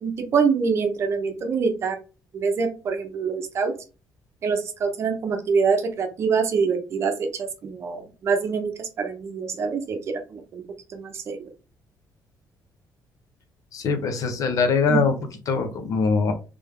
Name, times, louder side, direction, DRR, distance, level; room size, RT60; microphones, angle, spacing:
voice 1, 0.0-2.0 2.3-3.7 4.4-10.6 10.9-11.4 14.9-15.0, right 5 dB, 40° right, 5 dB, 0.7 m, -25 dB
voice 2, 13.7-15.2 15.5-16.3, left 4 dB, 55° left, 7 dB, 0.8 m, -22 dB
3.4 x 3.4 x 3.5 m, 0.33 s
cardioid pair, 165°, 7 cm